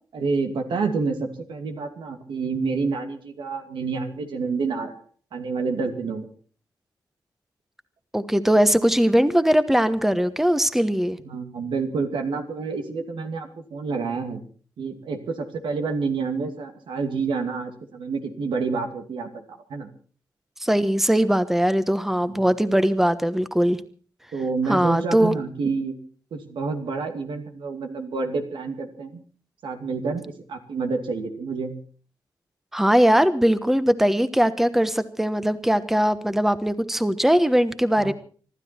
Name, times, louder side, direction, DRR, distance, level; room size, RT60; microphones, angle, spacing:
voice 1, 0.1-5.0 5.3-6.3 11.2-14.4 14.8-19.9 22.3-22.4 24.3-26.0 26.3-29.2 29.6-31.7 38.0-38.1, right 4 dB, 90° right, 5 dB, 2.6 m, -28 dB
voice 2, 8.1-11.2 20.6-23.8 24.7-25.4 32.7-38.1, equal, 5° right, 12 dB, 1.1 m, -20 dB
25.5 x 12.5 x 4.4 m, 0.42 s
cardioid pair, 85°, 8 cm